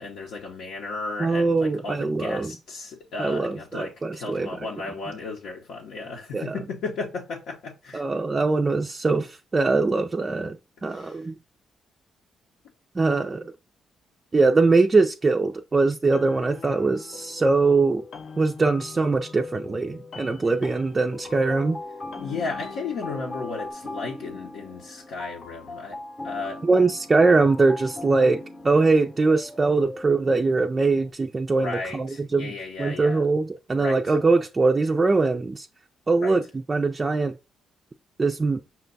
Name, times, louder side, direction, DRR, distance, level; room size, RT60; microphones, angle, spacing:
voice 1, 0.0-8.0 10.9-11.2 22.2-26.0 26.2-26.6 31.6-33.2 33.7-34.1 36.2-36.4, left 4 dB, 85° left, 0.8 m, -34 dB
voice 2, 1.2-2.5 3.2-4.5 6.3-6.6 7.9-10.6 10.8-11.3 13.0-13.4 14.3-18.0 18.4-21.8 26.6-32.5 32.8-35.7 36.1-37.4 38.2-38.6, right 3 dB, 25° right, 0.3 m, -22 dB
sound 1, 16.0-23.7, left 5 dB, 55° left, 0.5 m, -42 dB
sound 2, 21.2-31.1, left 1 dB, 20° left, 0.7 m, -39 dB
5.7 x 2.2 x 3.9 m
cardioid pair, 90°, 0 cm